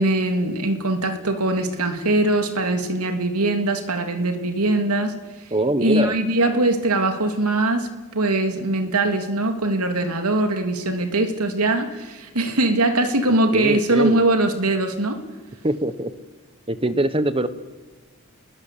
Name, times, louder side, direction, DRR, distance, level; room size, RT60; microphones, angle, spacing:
voice 1, 0.0-5.1 5.8-15.2, right 2 dB, 85° right, 6 dB, 2.9 m, -21 dB
voice 2, 5.5-6.2 13.5-14.2 15.6-16.1 16.7-17.5, right 1 dB, 25° right, 13 dB, 1.2 m, -22 dB
29.0 x 21.0 x 8.3 m, 1.2 s
head